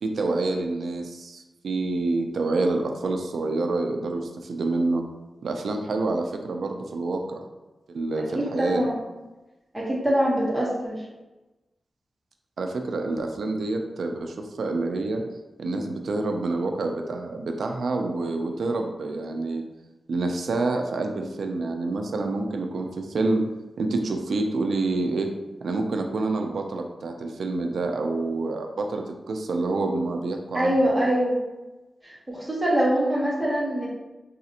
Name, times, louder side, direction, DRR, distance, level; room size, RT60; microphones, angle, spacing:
voice 1, 0.0-5.0 5.4-7.4 7.9-8.8 12.6-15.2 15.6-19.6 20.1-23.4 23.8-25.3 25.6-30.8, right 2 dB, 80° right, 3 dB, 0.3 m, -27 dB
voice 2, 8.3-9.0 9.7-11.0 30.5-31.4 32.0-33.9, equal, 10° right, -5 dB, 1.0 m, -24 dB
4.0 x 2.4 x 2.8 m, 1.1 s
wide cardioid pair, 120°, 0 cm